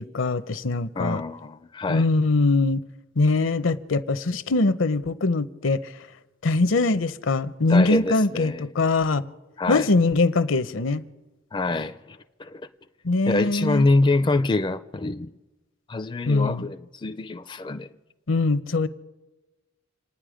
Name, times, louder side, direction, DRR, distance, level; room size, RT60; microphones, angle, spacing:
voice 1, 0.0-1.2 1.9-2.8 3.2-5.9 6.4-9.2 9.7-11.0 13.0-13.9 16.3-16.7 18.3-18.9, left 3 dB, 70° left, 0.7 m, -22 dB
voice 2, 1.0-2.0 7.7-8.7 9.6-9.9 11.5-12.6 13.3-15.3 15.9-17.9, left 2 dB, 25° left, 0.4 m, -25 dB
28.5 x 9.7 x 5.0 m
head